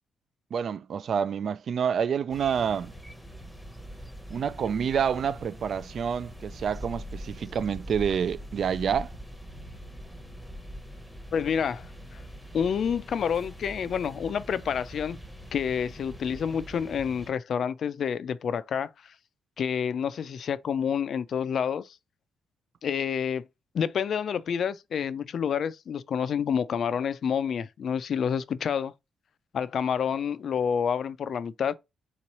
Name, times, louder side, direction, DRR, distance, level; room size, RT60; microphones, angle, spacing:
voice 1, 0.5-2.9 4.3-9.1, right 7 dB, 55° right, 0.3 m, -28 dB
sound 1, 2.3-17.3, equal, 5° left, 0.8 m, -43 dB
voice 2, 11.3-12.2 12.5-15.2 15.5-19.1 19.6-22.0 22.8-23.4 23.7-28.9 29.5-31.7, left 7 dB, 55° left, 0.3 m, -28 dB
3.8 x 3.0 x 4.1 m
cardioid pair, 110°, 0 cm